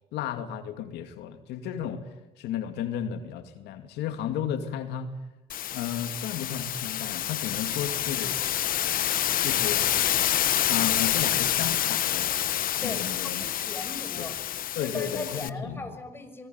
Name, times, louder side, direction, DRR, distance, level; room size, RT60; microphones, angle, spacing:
voice 1, 0.1-2.1 2.4-5.1 5.7-8.4 9.4-9.8 10.6-12.3 12.8-13.5 14.2-14.3 14.8-15.9, left 9 dB, 85° left, 7 dB, 2.5 m, -33 dB
sound 1, 5.5-15.5, left 11 dB, 55° left, 1.1 m, -27 dB
voice 2, 12.8-14.4 14.8-16.5, left 2 dB, 15° left, 5 dB, 6.1 m, -38 dB
25.5 x 20.0 x 9.6 m, 0.99 s
cardioid pair, 110°, 17 cm